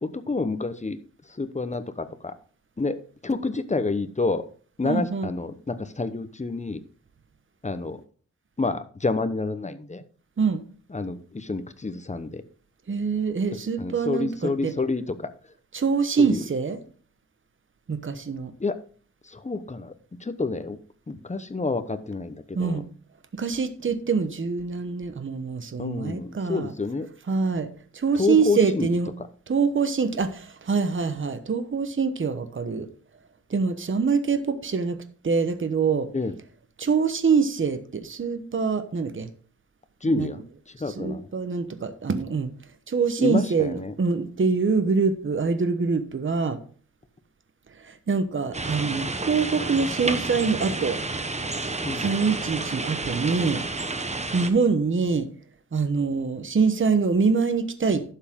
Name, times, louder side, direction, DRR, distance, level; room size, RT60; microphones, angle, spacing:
voice 1, 0.0-1.0 1.3-2.3 2.8-3.0 3.2-4.5 4.8-6.8 7.6-8.0 8.6-10.0 10.9-12.4 13.5-15.3 16.2-16.5 18.6-18.8 19.2-19.9 20.2-20.8 21.1-22.8 25.8-27.1 28.2-28.9 36.1-36.3 40.0-41.3 43.2-43.9 51.8-52.1, left 3 dB, 25° left, 10 dB, 0.9 m, -28 dB
voice 2, 4.8-5.3 10.4-10.6 12.9-14.7 15.7-16.8 17.9-18.5 22.5-22.9 23.4-26.7 27.3-27.7 27.9-29.1 29.5-32.9 33.5-35.0 35.2-36.1 36.8-39.3 40.1-40.3 40.9-42.5 42.9-46.6 47.8-51.0 52.0-53.6 54.3-55.3 55.7-58.0, right 5 dB, 45° right, 10 dB, 1.0 m, -24 dB
sound 1, 48.5-54.5, right 3 dB, 25° right, 1.0 m, -30 dB
11.5 x 7.2 x 3.7 m, 0.43 s
wide cardioid pair, 105°, 29 cm